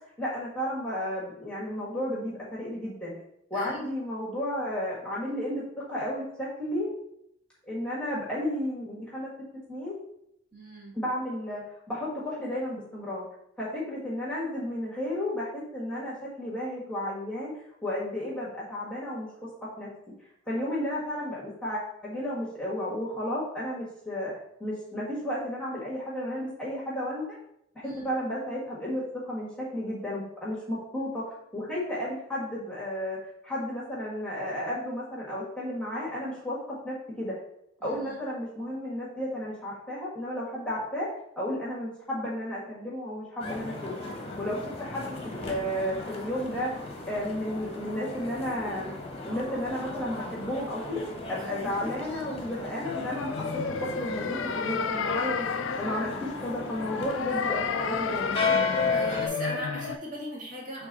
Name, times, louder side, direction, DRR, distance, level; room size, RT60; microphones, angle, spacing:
voice 1, 0.2-3.1 3.5-5.6 5.9-6.9 7.7-9.3 9.7-9.9 10.9-11.6 11.9-13.2 13.6-17.5 17.8-19.5 19.8-19.9 20.5-24.3 24.6-27.4 27.7-37.4 37.8-41.1 41.3-43.9 44.4-46.7 47.1-48.9 49.2-51.0 51.3-53.3 53.8-56.1 56.4-58.4, left 1 dB, 5° left, -7 dB, 1.6 m, -33 dB
voice 2, 10.5-11.0 27.8-28.0 37.8-38.2 51.4-51.6 58.9-60.9, left 1 dB, 40° right, -5 dB, 2.2 m, -39 dB
sound 1, 43.4-59.3, left 4 dB, 30° left, 1.0 m, -35 dB
sound 2, 52.8-60.0, left 5 dB, 80° left, 0.4 m, -32 dB
6.8 x 3.5 x 4.0 m, 0.77 s
head